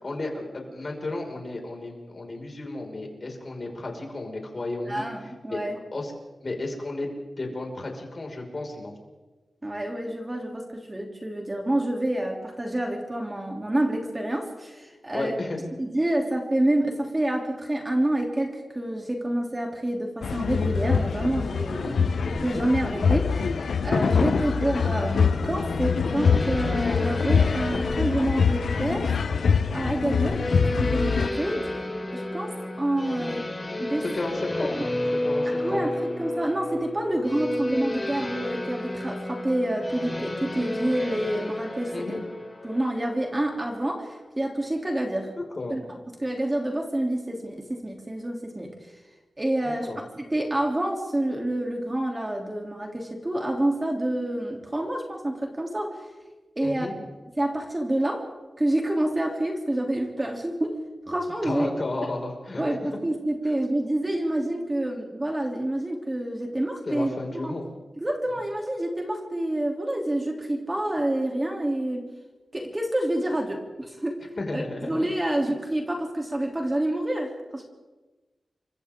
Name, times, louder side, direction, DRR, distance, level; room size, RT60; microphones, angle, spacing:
voice 1, 0.0-5.1 5.5-5.6 5.9-6.1 6.4-7.1 7.4-8.9 15.1-15.7 21.8-22.1 30.1-30.4 34.0-34.8 35.2-35.9 41.9-42.2 45.4-45.8 49.6-50.0 56.6-56.9 61.4-62.6 66.9-67.7 74.4-75.1, left 2 dB, 45° left, 1 dB, 5.6 m, -33 dB
voice 2, 4.9-5.8 9.6-15.3 15.8-29.2 29.7-30.4 30.8-31.7 32.1-33.5 33.8-34.0 34.8-34.9 35.6-42.2 42.6-45.3 45.7-45.8 46.2-48.7 49.4-56.0 56.5-56.9 57.4-58.3 58.6-60.8 61.1-61.7 62.6-67.1 67.4-67.5 68.0-72.1 72.5-74.2 74.5-77.7, right 1 dB, 20° right, 1 dB, 3.1 m, -28 dB
sound 1, 20.2-31.3, left 5 dB, 80° left, 0.9 m, -24 dB
sound 2, 26.1-44.2, left 1 dB, 20° left, 3.7 m, -32 dB
29.5 x 24.5 x 3.8 m, 1.2 s
wide cardioid pair, 85°, 0 cm